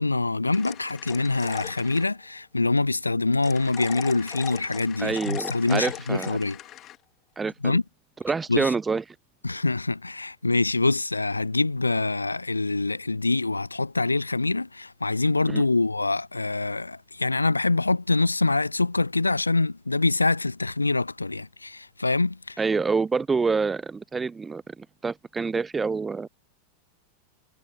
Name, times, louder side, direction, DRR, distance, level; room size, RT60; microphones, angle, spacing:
voice 1, 0.0-6.6 7.6-7.8 8.5-8.7 9.4-22.6, left 3 dB, 80° left, 0.3 m, -25 dB
sound 1, 0.5-2.1 3.4-7.0, left 13 dB, 35° left, 1.2 m, -39 dB
voice 2, 5.0-6.4 7.4-7.8 8.2-9.0 15.5-15.6 22.6-26.3, right 4 dB, 15° right, 0.7 m, -27 dB
figure-of-eight pair, 90°, 0 cm